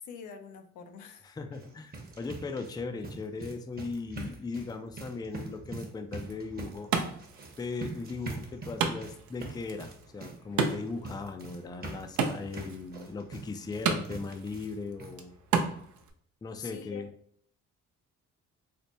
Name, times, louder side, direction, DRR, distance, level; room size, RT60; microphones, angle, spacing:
voice 1, 0.0-1.3 16.6-17.0, left 7 dB, 80° left, 6 dB, 0.6 m, -45 dB
voice 2, 1.2-6.9 7.6-15.3 16.4-17.1, left 4 dB, 15° left, 7 dB, 0.3 m, -38 dB
sound 1, 1.5-14.7 15.0-15.1 15.6-15.7 16.0-16.1, right 2 dB, 30° right, 0.9 m, -44 dB
Wood, 6.1-16.1, right 5 dB, 75° right, 0.6 m, -35 dB
3.3 x 2.1 x 4.0 m, 0.63 s
cardioid pair, 90°, 30 cm